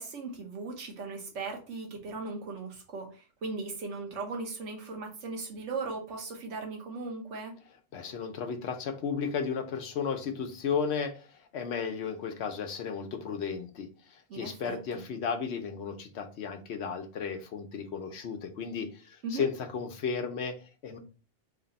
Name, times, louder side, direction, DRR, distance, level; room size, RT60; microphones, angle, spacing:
voice 1, 0.0-7.5 14.3-15.0 19.2-19.5, right 3 dB, 90° right, 1.3 m, -38 dB
voice 2, 7.9-21.0, left 6 dB, 70° left, 0.9 m, -34 dB
3.3 x 2.6 x 4.0 m
omnidirectional pair, 1.2 m